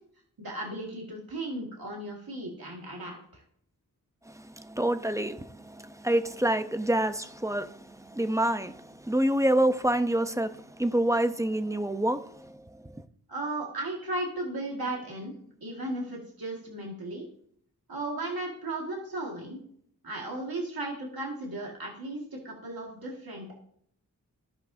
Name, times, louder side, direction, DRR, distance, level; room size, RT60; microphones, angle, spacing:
voice 1, 0.4-3.4 13.3-15.3 15.6-17.3 17.9-19.6 20.0-23.6, right 2 dB, 85° right, 1.9 m, -35 dB
voice 2, 4.3-13.0, right 1 dB, 10° right, 0.7 m, -28 dB
15.5 x 5.4 x 2.7 m
wide cardioid pair, 60°, 35 cm